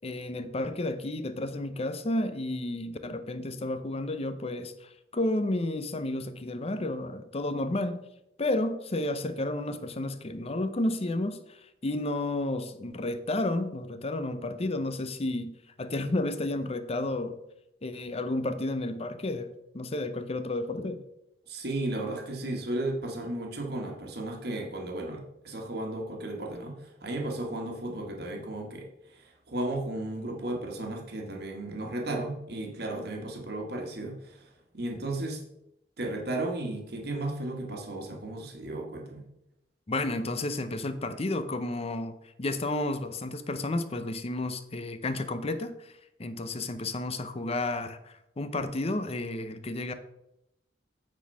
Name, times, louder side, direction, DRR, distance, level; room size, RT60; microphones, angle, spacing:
voice 1, 0.0-8.0 8.4-11.6 11.8-15.5 15.8-17.4 17.8-21.0 39.9-45.9 46.2-49.9, left 2 dB, 35° left, 10 dB, 0.7 m, -31 dB
voice 2, 21.5-35.4 36.0-39.2, right 1 dB, 65° right, 1 dB, 1.5 m, -34 dB
8.8 x 4.2 x 5.4 m, 0.85 s
head